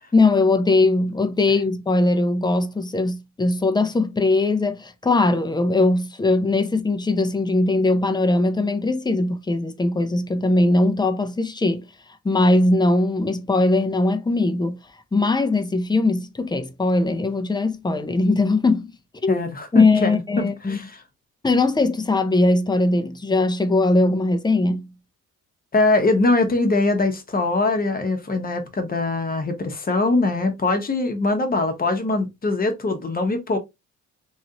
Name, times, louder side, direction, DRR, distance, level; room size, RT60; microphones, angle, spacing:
voice 1, 0.1-11.8 12.2-14.8 15.1-18.9 19.2-19.4 19.7-20.8 21.4-24.9, left 2 dB, 15° left, 0.5 m, -20 dB
voice 2, 19.3-20.9 25.7-33.6, left 2 dB, 30° left, 0.9 m, -22 dB
3.1 x 2.5 x 2.8 m
cardioid pair, 90°, 30 cm